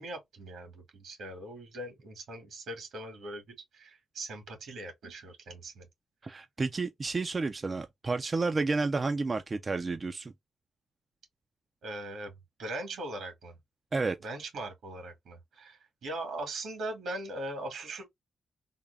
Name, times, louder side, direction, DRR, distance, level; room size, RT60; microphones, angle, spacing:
voice 1, 0.0-5.9 11.8-12.3 12.6-13.6 14.2-18.1, right 1 dB, 85° right, 1.9 m, -40 dB
voice 2, 6.2-10.3 13.9-14.2, right 3 dB, 30° right, 0.3 m, -31 dB
3.5 x 2.2 x 3.3 m
cardioid pair, 115°, 0 cm